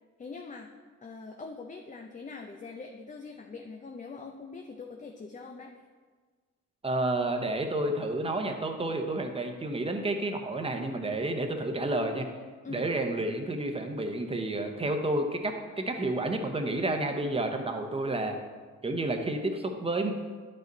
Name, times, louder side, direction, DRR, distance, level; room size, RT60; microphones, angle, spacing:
voice 1, 0.2-0.7 1.0-5.7 12.6-12.9, left 4 dB, 25° left, 3 dB, 0.6 m, -43 dB
voice 2, 6.8-12.3 12.7-18.4 18.8-20.1, right 2 dB, 20° right, 4 dB, 1.0 m, -30 dB
9.8 x 5.4 x 4.0 m, 1.5 s
cardioid pair, 90°, 30 cm